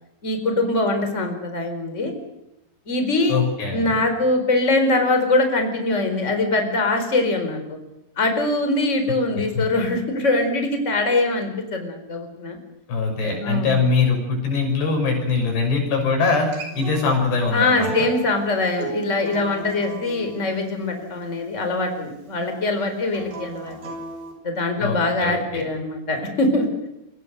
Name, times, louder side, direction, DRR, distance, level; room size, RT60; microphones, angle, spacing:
voice 1, 0.2-2.1 2.9-3.4 3.7-7.8 8.2-12.6 13.2-13.8 17.5-23.9 24.4-26.7, left 2 dB, 15° left, 5 dB, 4.5 m, -23 dB
voice 2, 3.3-4.0 9.3-9.7 12.9-16.5 16.7-18.1 24.8-25.7, left 4 dB, 90° left, 3 dB, 8.5 m, -22 dB
Acoustic guitar, 16.3-21.5 23.1-24.3, right 5 dB, 85° right, 7.7 m, -35 dB
28.0 x 24.5 x 6.7 m, 0.90 s
omnidirectional pair, 4.7 m